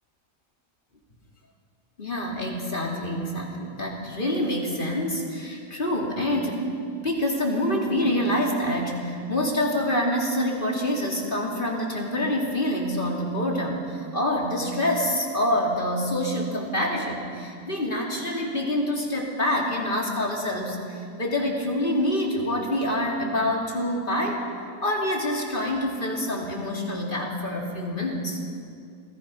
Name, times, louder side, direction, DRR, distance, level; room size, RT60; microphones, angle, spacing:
voice 1, 2.0-6.7 7.0-24.4 24.8-28.4, left 1 dB, 35° left, -1 dB, 3.1 m, -26 dB
27.5 x 18.5 x 5.6 m, 2.4 s
omnidirectional pair, 1.5 m